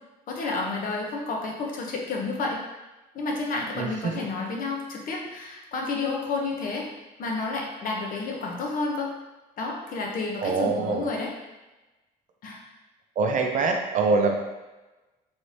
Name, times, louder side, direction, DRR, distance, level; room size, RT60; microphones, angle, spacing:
voice 1, 0.3-2.6 3.1-6.9 7.2-9.1 9.6-11.3 12.4-12.6, left 3 dB, 55° left, 0 dB, 0.7 m, -30 dB
voice 2, 3.8-4.3 10.4-11.1 13.2-14.4, right 4 dB, 50° right, 3 dB, 0.5 m, -24 dB
3.1 x 2.7 x 3.2 m, 1.1 s
cardioid pair, 110°, 17 cm